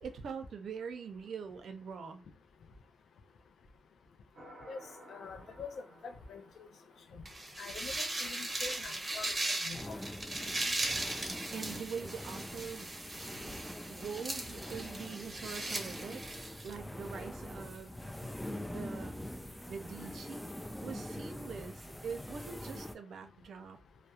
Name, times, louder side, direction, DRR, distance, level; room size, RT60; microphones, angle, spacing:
voice 1, 0.0-2.2 8.7-8.9 11.0-13.1 13.9-18.0 18.6-19.2 19.7-20.5 20.8-23.8, right 6 dB, 75° right, 0.5 m, -44 dB
sound 1, 4.4-7.8, right 1 dB, 60° right, 0.8 m, -55 dB
voice 2, 5.1-5.7 6.0-6.4 7.1-7.2 7.6-9.3 9.6-10.0, left 5 dB, 80° left, 0.4 m, -45 dB
sound 2, 7.3-16.7, right 2 dB, 30° right, 0.8 m, -38 dB
sound 3, 9.7-23.0, left 1 dB, 5° left, 0.3 m, -44 dB
2.3 x 2.0 x 2.7 m
cardioid pair, 60°, 0 cm